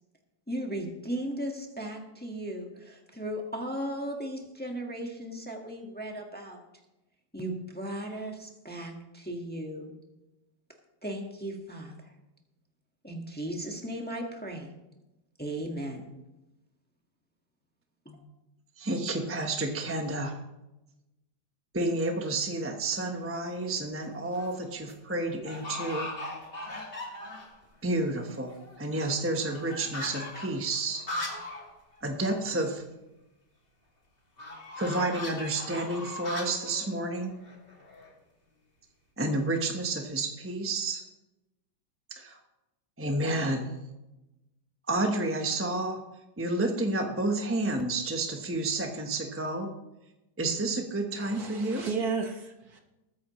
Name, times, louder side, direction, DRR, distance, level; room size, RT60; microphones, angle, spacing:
voice 1, 0.5-6.6 7.3-9.9 11.0-12.1 13.0-14.7 15.4-16.1 18.0-18.2, right 1 dB, 5° left, 1 dB, 1.4 m, -36 dB
voice 2, 18.8-20.4 21.7-26.1 27.8-31.1 32.0-32.8 34.8-37.3 39.2-41.0 42.1-42.4 43.0-43.7 44.9-46.0 46.4-49.7 50.4-51.8, right 2 dB, 10° right, 3 dB, 0.8 m, -30 dB
sound 1, 23.2-23.6 24.1-24.6 24.8-24.9 25.4-27.6 28.0-28.1 28.3-31.7 32.0-32.1 32.4-32.5 34.4-38.1, left 2 dB, 30° left, 2.7 m, -39 dB
voice 3, 51.1-52.8, right 5 dB, 55° right, 3 dB, 1.8 m, -33 dB
20.5 x 9.6 x 3.1 m, 0.98 s
omnidirectional pair, 2.0 m